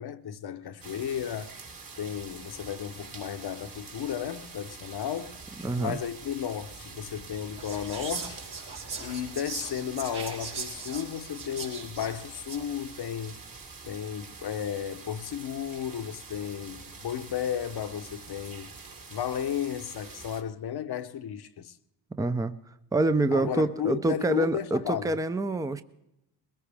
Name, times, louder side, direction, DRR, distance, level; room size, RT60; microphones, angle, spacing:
voice 1, 0.0-1.5 2.0-5.4 5.8-8.4 9.0-13.4 13.8-18.7 19.1-21.8 23.3-25.2, left 9 dB, 50° left, 1.0 m, -34 dB
sound 1, 0.8-20.4, right 4 dB, 45° right, 2.4 m, -46 dB
voice 2, 5.6-6.0 22.1-22.6 22.9-25.8, right 2 dB, 5° right, 0.7 m, -26 dB
Whispering, 7.6-12.7, right 4 dB, 70° right, 3.5 m, -39 dB
21.5 x 15.0 x 3.5 m
supercardioid pair, 60°, 49 cm